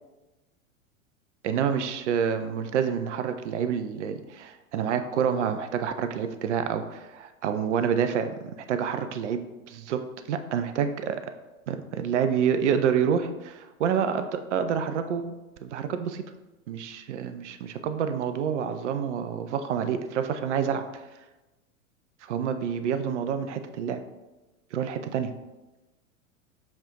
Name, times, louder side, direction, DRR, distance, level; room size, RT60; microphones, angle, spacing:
voice 1, 1.4-11.3 11.7-16.2 16.7-21.0 22.3-24.0 24.7-25.3, right 7 dB, 60° right, 9 dB, 0.5 m, -28 dB
7.2 x 2.4 x 2.9 m, 1.1 s
figure-of-eight pair, 90°, 41 cm